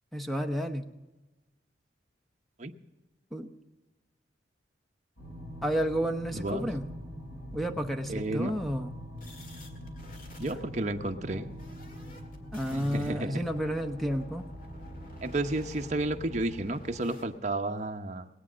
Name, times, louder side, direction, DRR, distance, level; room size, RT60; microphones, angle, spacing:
voice 1, 0.1-0.8 3.3-3.5 5.6-6.8 7.5-8.9 11.3-11.4 12.5-14.4, equal, ahead, 5 dB, 0.8 m, -31 dB
sound 1, 5.2-16.6, equal, 80° left, 5.0 m, -44 dB
voice 2, 6.3-6.7 8.1-8.5 10.4-11.5 12.7-13.4 15.2-18.3, right 2 dB, 40° right, 5 dB, 0.9 m, -32 dB
sound 2, 9.2-17.2, equal, 50° left, 1.9 m, -50 dB
20.0 x 8.6 x 6.2 m, 1.1 s
head